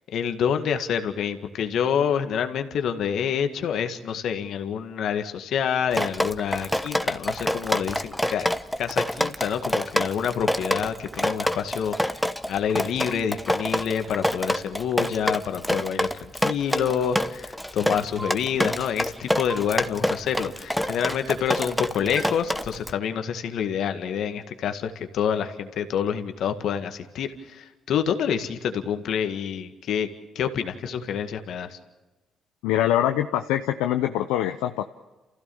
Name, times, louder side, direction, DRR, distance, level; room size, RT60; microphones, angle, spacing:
voice 1, 0.1-8.5 8.8-12.2 12.5-30.1 30.4-31.8, left 8 dB, 70° left, 8 dB, 1.9 m, -27 dB
Drip, 5.9-22.9, equal, 5° left, 1.1 m, -27 dB
sound 1, 18.2-18.3 19.5-19.6 20.8-20.9 22.2-22.3, right 1 dB, 15° right, 3.3 m, -33 dB
voice 2, 32.6-34.8, left 12 dB, 90° left, 7 dB, 0.7 m, -24 dB
28.5 x 15.5 x 7.1 m, 1.2 s
supercardioid pair, 60°, 0 cm